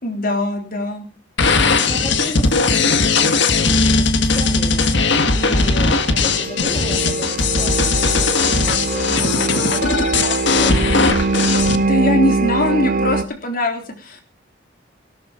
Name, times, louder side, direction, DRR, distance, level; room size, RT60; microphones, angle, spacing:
voice 1, 0.0-1.0 11.8-14.2, left 1 dB, 50° left, 4 dB, 3.7 m, -21 dB
sound 1, 1.4-11.8, left 4 dB, 70° left, 1.8 m, -18 dB
voice 2, 1.8-8.4 8.7-11.5, left 1 dB, 30° left, 2 dB, 3.0 m, -34 dB
sound 2, 4.7-13.2, right 3 dB, 45° right, 1.1 m, -23 dB
17.0 x 13.5 x 5.2 m, 0.38 s
head